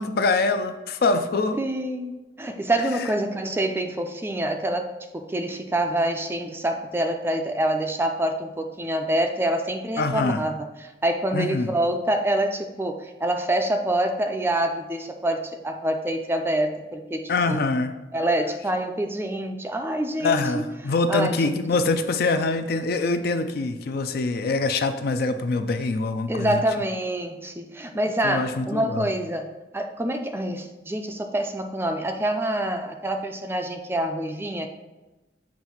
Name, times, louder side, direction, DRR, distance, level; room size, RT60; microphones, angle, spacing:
voice 1, 0.0-1.6 10.0-10.4 11.3-11.7 17.3-17.9 20.2-26.6 28.2-29.0, left 3 dB, 60° left, 9 dB, 0.4 m, -24 dB
voice 2, 1.6-4.9 5.1-17.6 18.1-20.6 21.1-21.6 26.3-34.7, right 1 dB, 15° right, 5 dB, 0.4 m, -26 dB
7.4 x 2.6 x 5.6 m, 1.1 s
head